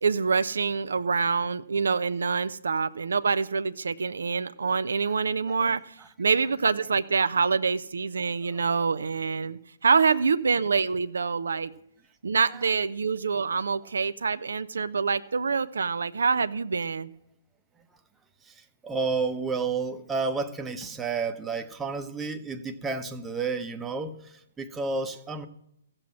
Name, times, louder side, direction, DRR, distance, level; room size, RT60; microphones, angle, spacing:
voice 1, 0.0-11.7 12.2-17.1, right 5 dB, 75° right, 13 dB, 0.4 m, -26 dB
voice 2, 5.5-6.1 8.5-8.9 9.9-10.1 11.5-11.6 12.5-12.6 18.4-25.5, right 4 dB, 10° right, 6 dB, 0.8 m, -32 dB
15.5 x 7.6 x 6.1 m, 0.77 s
figure-of-eight pair, 130°, 0 cm